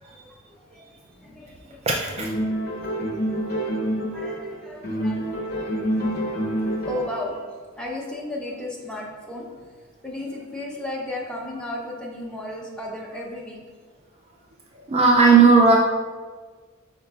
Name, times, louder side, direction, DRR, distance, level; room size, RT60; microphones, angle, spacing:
voice 1, 0.0-2.5 3.9-5.5 6.9-7.4 7.8-9.5 10.0-13.6, left 2 dB, 5° left, -3 dB, 0.6 m, -35 dB
voice 2, 1.9-2.3 14.9-15.8, right 4 dB, 30° right, -1 dB, 0.3 m, -15 dB
sound 1, 2.2-4.5 4.8-7.3, equal, 50° left, 1.0 m, -27 dB
5.5 x 3.8 x 2.3 m, 1.5 s
head